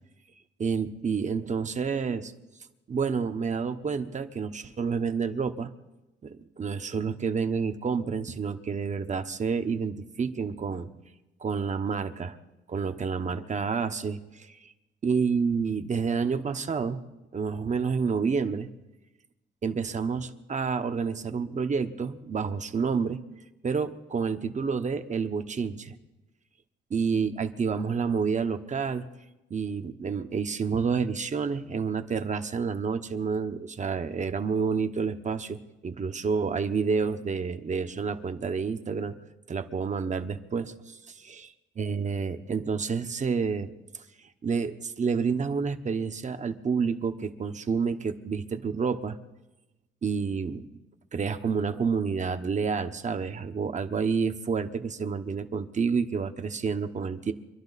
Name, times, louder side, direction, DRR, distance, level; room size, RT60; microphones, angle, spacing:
voice 1, 0.6-2.3 2.9-5.7 6.2-10.9 11.4-12.4 12.7-14.7 15.0-17.0 17.3-18.7 19.6-23.2 23.6-25.9 26.9-29.0 29.5-39.1 39.5-41.5 41.8-43.7 44.4-49.2 50.0-50.7 51.1-57.3, right 5 dB, 35° right, 8 dB, 1.1 m, -29 dB
25.5 x 11.5 x 4.1 m, 1.0 s
cardioid pair, 90°, 20 cm